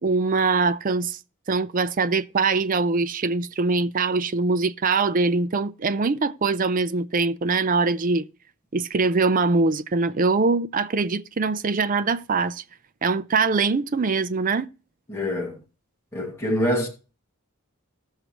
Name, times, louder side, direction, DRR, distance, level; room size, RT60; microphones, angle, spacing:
voice 1, 0.0-1.2 1.5-8.3 8.7-12.6 13.0-14.7, right 4 dB, 35° right, 0.5 m, -23 dB
voice 2, 15.1-15.6 16.1-16.9, equal, 10° left, 2.1 m, -25 dB
17.0 x 6.5 x 3.0 m
head